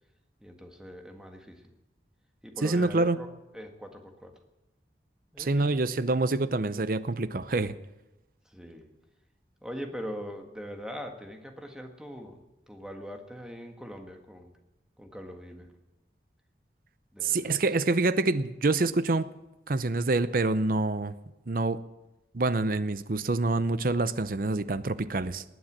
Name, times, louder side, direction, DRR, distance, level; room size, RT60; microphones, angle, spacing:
voice 1, 0.4-1.6 2.4-3.3 3.5-4.3 5.3-5.8 8.5-8.9 9.6-14.5 15.0-15.7 17.1-17.6, equal, 5° right, 4 dB, 1.6 m, -42 dB
voice 2, 2.6-3.2 5.4-7.7 17.2-19.3 19.7-21.1 21.5-21.8 22.3-25.4, right 3 dB, 50° right, 14 dB, 0.7 m, -26 dB
19.0 x 9.4 x 7.4 m, 1.0 s
head